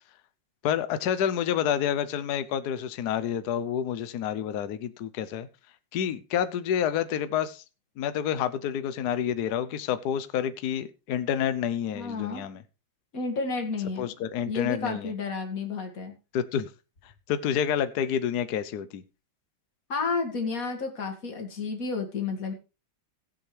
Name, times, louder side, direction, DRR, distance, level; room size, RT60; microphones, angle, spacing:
voice 1, 0.6-5.5 5.9-7.6 8.0-12.6 14.0-15.1 16.3-16.7 17.3-19.0, left 9 dB, 60° left, 1.3 m, -28 dB
voice 2, 11.9-12.4 13.1-14.1 14.4-16.1 19.9-22.5, left 4 dB, 45° left, 2.5 m, -31 dB
16.5 x 8.0 x 3.3 m
omnidirectional pair, 2.2 m